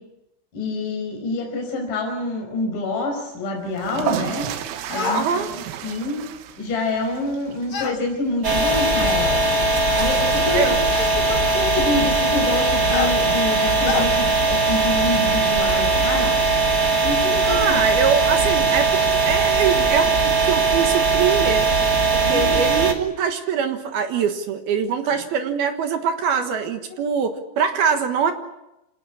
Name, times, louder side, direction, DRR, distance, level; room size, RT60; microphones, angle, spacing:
voice 1, 0.5-4.5 4.9-6.2 6.6-9.4 10.0-10.7 11.2-16.4 17.0-17.8 22.2-22.7 25.0-25.1 26.9-27.1, left 2 dB, 40° left, 2 dB, 6.4 m, -27 dB
sound 1, 3.7-10.5, right 10 dB, 90° right, 4.1 m, -33 dB
sound 2, 4.9-5.3 7.7-8.0 9.2-9.3 10.9-11.2 12.9-13.1 13.8-14.1, left 5 dB, 70° left, 1.1 m, -26 dB
voice 2, 5.1-5.5 10.5-10.8 17.4-21.7 22.1-28.3, right 7 dB, 65° right, 6 dB, 2.7 m, -23 dB
sound 3, 8.4-22.9, right 3 dB, 35° right, 1.5 m, -19 dB
26.5 x 18.5 x 8.6 m, 0.92 s
omnidirectional pair, 5.9 m